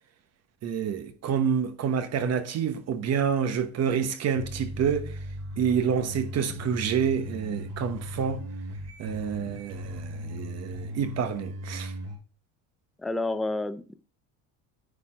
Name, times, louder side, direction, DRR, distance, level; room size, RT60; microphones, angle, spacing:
voice 1, 0.6-5.2 5.6-8.4 9.0-11.9, right 7 dB, 45° right, 1.1 m, -28 dB
sound 1, 4.3-12.2, equal, 65° right, 4.5 m, -37 dB
voice 2, 13.0-13.9, left 2 dB, ahead, 0.3 m, -29 dB
9.8 x 4.3 x 5.0 m
cardioid pair, 115°, 36 cm